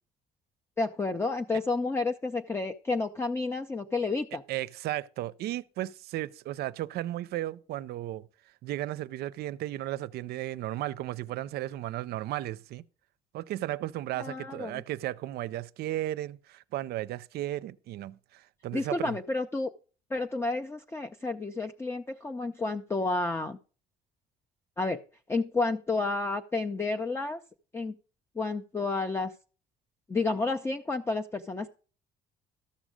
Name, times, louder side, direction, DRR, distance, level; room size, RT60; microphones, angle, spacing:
voice 1, 0.8-4.4 14.2-14.8 18.7-19.7 20.1-23.6 24.8-25.0 25.3-27.4 27.7-27.9 28.4-29.3 30.1-31.7, left 3 dB, 15° left, 0.5 m, -30 dB
voice 2, 4.5-8.3 8.6-12.8 13.3-19.2, right 14 dB, 70° right, 0.5 m, -35 dB
13.0 x 6.2 x 5.0 m
cardioid pair, 110°, 17 cm